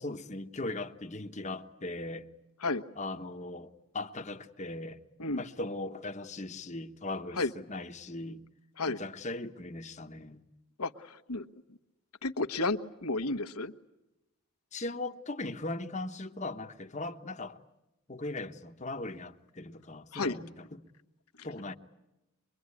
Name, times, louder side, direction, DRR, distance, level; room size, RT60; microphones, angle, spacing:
voice 1, 0.0-2.3 3.0-5.0 5.3-8.4 8.9-10.4 14.7-17.6 18.1-20.8 21.4-21.7, left 2 dB, 30° left, 1.1 m, -39 dB
voice 2, 10.8-11.5 12.2-13.7 20.1-20.4, left 2 dB, 85° left, 1.3 m, -32 dB
24.5 x 23.0 x 9.7 m
head